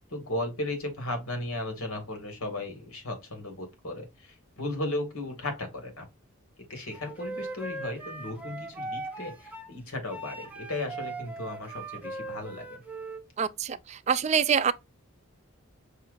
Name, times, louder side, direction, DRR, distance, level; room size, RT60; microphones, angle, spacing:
voice 1, 0.1-6.1 6.7-12.8, left 1 dB, 80° left, 2.0 m, -35 dB
Wind instrument woodwind instrument, 6.9-9.7 10.1-13.2, right 2 dB, 5° right, 0.7 m, -39 dB
voice 2, 13.4-14.7, right 7 dB, 30° right, 0.3 m, -25 dB
5.6 x 3.0 x 2.5 m
head